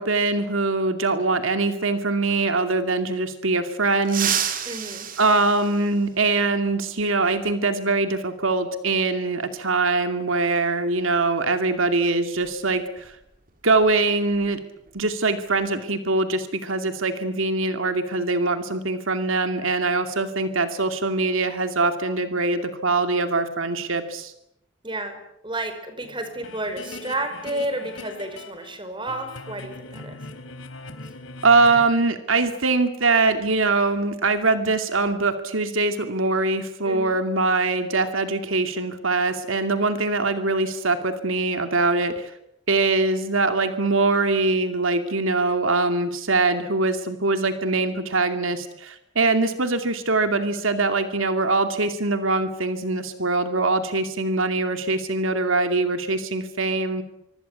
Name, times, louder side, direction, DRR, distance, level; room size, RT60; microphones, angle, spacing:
voice 1, 0.0-4.6 5.2-13.2 13.6-14.6 14.9-24.3 31.4-42.3 42.7-57.0, right 3 dB, 85° right, 8 dB, 2.5 m, -23 dB
sound 1, 4.0-6.4 8.1-8.2 9.4-9.5 11.1-11.3 11.7-11.9 12.4-14.5 14.8-15.1 15.5-15.9, right 8 dB, 40° right, 2.9 m, -31 dB
voice 2, 4.6-5.1 24.8-30.2 36.8-37.2, right 1 dB, 25° right, 8 dB, 5.1 m, -31 dB
sound 2, 26.0-28.8 29.1-31.8, left 3 dB, 75° left, 3.6 m, -40 dB
25.0 x 25.0 x 8.3 m, 0.79 s
head